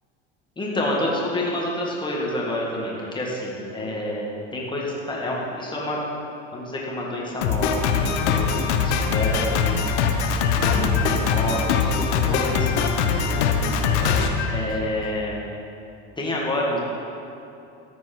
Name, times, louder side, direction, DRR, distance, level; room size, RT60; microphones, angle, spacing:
voice 1, 0.6-4.3 4.5-6.0 6.5-9.8 10.6-13.8 14.5-15.4 16.2-16.8, left 1 dB, 15° left, -3 dB, 1.9 m, -28 dB
Drum kit, 7.4-15.2, left 6 dB, 85° left, 0.8 m, -22 dB
13.5 x 4.6 x 4.6 m, 2.7 s
supercardioid pair, 110°, 33 cm